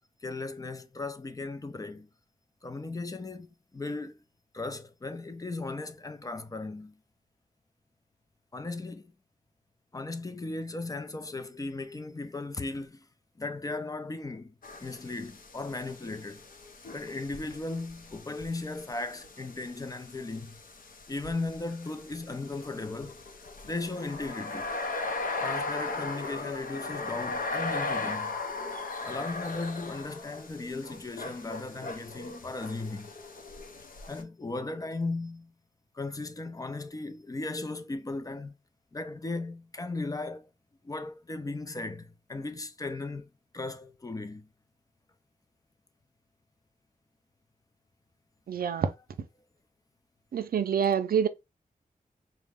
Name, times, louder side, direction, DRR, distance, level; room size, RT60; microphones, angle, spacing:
voice 1, 0.2-2.1 2.6-4.2 4.5-7.0 8.5-9.1 9.9-13.1 13.4-14.5 14.8-16.5 16.9-20.6 21.1-23.2 23.6-24.7 25.4-28.4 29.0-33.1 34.1-35.5 35.9-38.5 38.9-40.5 40.8-44.5 48.7-48.8, left 3 dB, 25° left, 0.4 m, -36 dB
sound 1, 14.6-34.2, left 3 dB, 70° left, 0.6 m, -38 dB
voice 2, 48.5-48.9 50.3-51.3, right 7 dB, 80° right, 0.4 m, -26 dB
3.9 x 2.1 x 3.4 m
wide cardioid pair, 130°, 15 cm